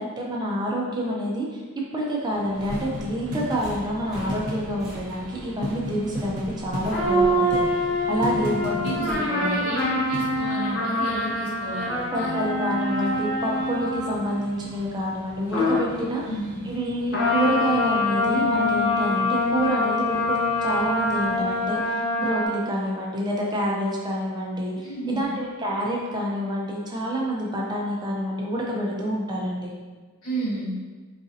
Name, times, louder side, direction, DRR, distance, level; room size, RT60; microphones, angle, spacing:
voice 1, 0.0-1.6 1.9-9.6 12.1-16.2 16.6-24.9 25.1-29.7, equal, 20° right, -3 dB, 0.4 m, -28 dB
sound 1, 2.3-21.8, equal, 90° right, 0.6 m, -39 dB
Subway metro underground, 2.5-9.1, equal, ahead, 0.9 m, -41 dB
sound 2, 6.9-14.4 15.5-15.9 17.1-22.5, left 1 dB, 50° left, 0.7 m, -25 dB
voice 2, 8.2-12.5 16.2-16.7 24.8-25.3 30.2-30.7, right 1 dB, 75° left, -5 dB, 1.0 m, -32 dB
4.0 x 2.5 x 2.7 m, 1.4 s
head